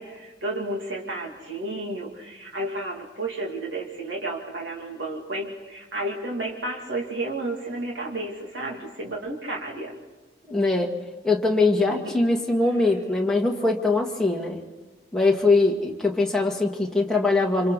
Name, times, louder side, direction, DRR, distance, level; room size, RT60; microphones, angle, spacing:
voice 1, 0.0-9.9 12.0-12.1, right 2 dB, 85° right, -1 dB, 2.8 m, -32 dB
voice 2, 10.5-10.9 11.2-14.6 15.1-17.7, left 3 dB, 5° left, -2 dB, 2.2 m, -22 dB
28.0 x 26.5 x 4.2 m, 1.2 s
head